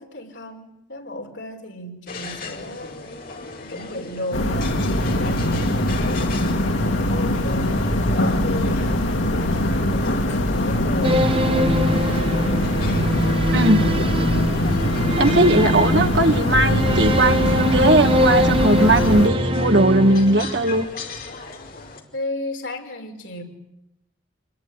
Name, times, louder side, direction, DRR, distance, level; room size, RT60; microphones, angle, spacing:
voice 1, 0.0-3.3 3.6-12.5 13.0-14.3 22.1-23.4, left 1 dB, 75° left, 2 dB, 5.7 m, -35 dB
sound 1, 2.1-22.0, left 3 dB, 50° left, 4.7 m, -38 dB
sound 2, 4.3-19.3, left 1 dB, 90° left, 2.4 m, -22 dB
sound 3, 11.0-20.9, equal, 30° right, 1.3 m, -23 dB
voice 2, 13.5-13.8 15.2-20.9, right 1 dB, 65° right, 7 dB, 1.9 m, -18 dB
27.0 x 22.0 x 9.9 m, 0.83 s
head